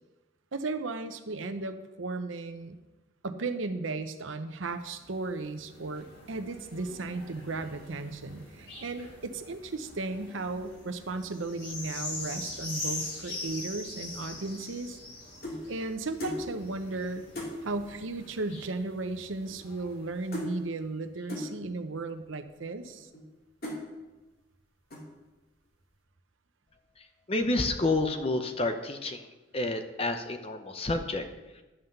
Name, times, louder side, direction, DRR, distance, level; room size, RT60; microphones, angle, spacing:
voice 1, 0.5-2.8 3.2-15.0 15.7-17.2 17.6-23.1, right 3 dB, 85° right, 8 dB, 0.9 m, -35 dB
sound 1, 4.7-20.5 21.2-21.3, left 2 dB, 70° left, 4.2 m, -43 dB
sound 2, 14.5-15.7 16.2-16.5 16.9-17.0 17.3-17.6 18.5-18.6 18.8-19.1 19.4-20.1 20.3-20.6 21.3-21.5 22.2-22.3 22.9-23.3 23.6-23.9 24.4-24.6 24.9-25.3, left 1 dB, 50° left, 2.8 m, -38 dB
voice 2, 27.3-29.3 29.5-31.2, left 2 dB, 30° left, 7 dB, 0.8 m, -29 dB
11.0 x 5.8 x 6.8 m, 1.1 s
head